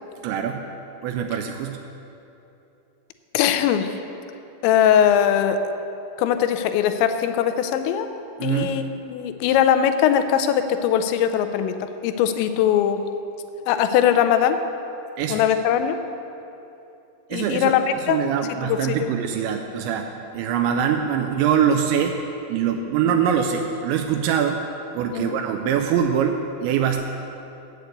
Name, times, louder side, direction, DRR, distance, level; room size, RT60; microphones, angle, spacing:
voice 1, 0.2-0.6 1.0-1.8 8.4-8.7 15.2-15.4 17.3-17.7 18.1-22.2 22.5-24.6 25.0-27.0, right 8 dB, 85° right, 4 dB, 2.8 m, -23 dB
voice 2, 3.3-4.0 4.6-5.6 6.2-8.1 8.4-13.0 13.7-14.6 15.3-16.0 17.3-18.2 18.6-19.1 25.1-25.4, left 9 dB, 85° left, 9 dB, 2.9 m, -20 dB
8.5 x 8.2 x 7.9 m, 2.8 s
omnidirectional pair, 5.2 m